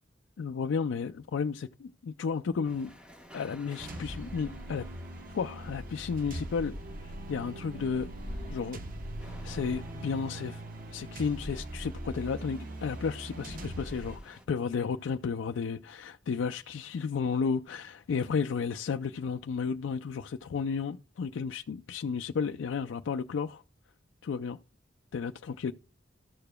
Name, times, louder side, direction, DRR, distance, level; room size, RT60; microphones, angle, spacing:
voice 1, 0.4-2.9 3.3-4.9 5.3-6.8 7.0-8.1 8.5-8.8 9.4-10.6 10.9-23.6 24.2-24.6 25.1-25.7, left 5 dB, 90° left, 0.4 m, -33 dB
sound 1, 2.6-14.5, equal, 5° right, 1.1 m, -50 dB
sound 2, 3.8-14.2, right 1 dB, 50° right, 0.9 m, -41 dB
14.0 x 6.7 x 2.2 m
head